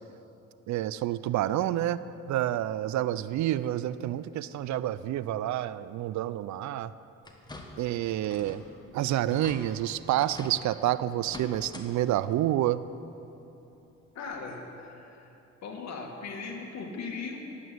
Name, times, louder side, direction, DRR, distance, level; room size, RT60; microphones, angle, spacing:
voice 1, 0.7-2.0 2.3-6.9 7.8-8.6 8.9-12.8, right 13 dB, 70° right, 16 dB, 0.4 m, -28 dB
sound 1, 7.2-7.9 8.2-8.7 9.0-9.1 9.3-9.6 10.2-10.6 11.2-11.9 12.2-12.3 13.7-13.8 14.3-14.4, left 2 dB, 15° left, 1.4 m, -44 dB
voice 2, 14.2-15.3 15.6-17.4, left 4 dB, 60° left, 1 dB, 1.9 m, -38 dB
11.0 x 8.5 x 7.8 m, 3.0 s
cardioid pair, 90°, 30 cm